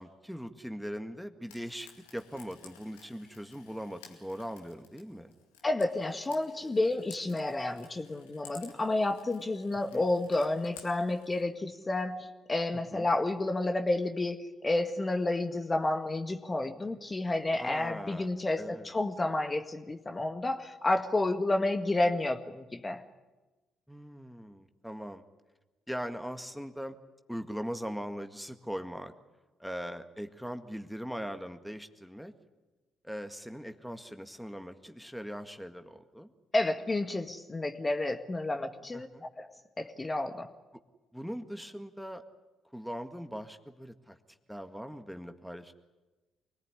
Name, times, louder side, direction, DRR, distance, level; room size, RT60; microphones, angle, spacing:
voice 1, 0.0-5.3 9.9-10.0 12.9-13.1 17.6-18.3 18.6-18.9 23.9-25.2 25.9-27.0 27.3-29.1 29.6-32.3 33.0-36.3 38.9-39.3 41.1-42.2 42.7-44.2 44.5-45.7, equal, ahead, 7 dB, 1.9 m, -40 dB
Frying (food), 1.5-11.4, left 6 dB, 85° left, 2.3 m, -55 dB
voice 2, 5.6-14.4 14.6-23.0 36.5-39.1 39.4-39.5 39.8-40.5, left 2 dB, 25° left, 6 dB, 1.7 m, -30 dB
24.5 x 19.0 x 9.8 m, 1.2 s
hypercardioid pair, 50°, 0 cm